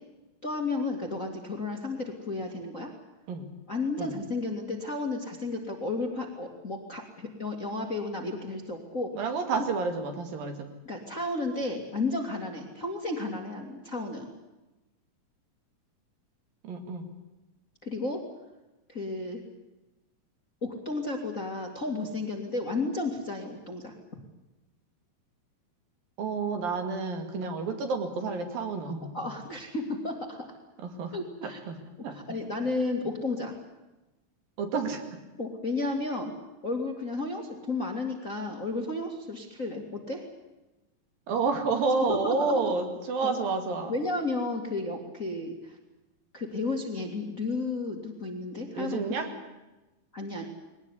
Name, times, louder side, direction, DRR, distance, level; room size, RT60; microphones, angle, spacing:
voice 1, 0.4-2.9 3.7-9.3 10.8-14.3 17.8-18.2 18.9-19.4 20.6-24.0 29.1-30.4 31.1-31.6 32.1-33.6 35.4-36.3 36.6-40.3 42.1-42.6 43.2-43.4 43.9-45.8 46.3-49.0 50.1-50.5, left 2 dB, 25° left, 2 dB, 2.0 m, -33 dB
voice 2, 9.1-10.7 16.6-17.1 26.2-29.1 30.8-31.1 31.4-31.8 32.0-32.1 34.6-35.0 41.3-44.0 48.8-49.3, right 4 dB, 70° right, 6 dB, 4.0 m, -29 dB
21.5 x 18.5 x 9.8 m, 1.0 s
omnidirectional pair, 4.4 m